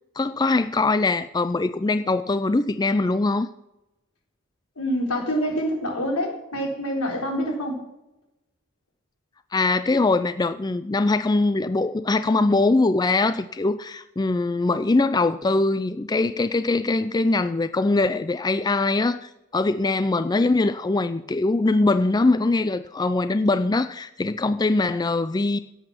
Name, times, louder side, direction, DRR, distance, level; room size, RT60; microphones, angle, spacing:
voice 1, 0.2-3.5 9.5-25.6, left 3 dB, 20° left, 12 dB, 0.4 m, -22 dB
voice 2, 4.8-7.8, equal, 85° left, 1 dB, 4.1 m, -26 dB
17.0 x 8.0 x 6.0 m, 0.93 s
head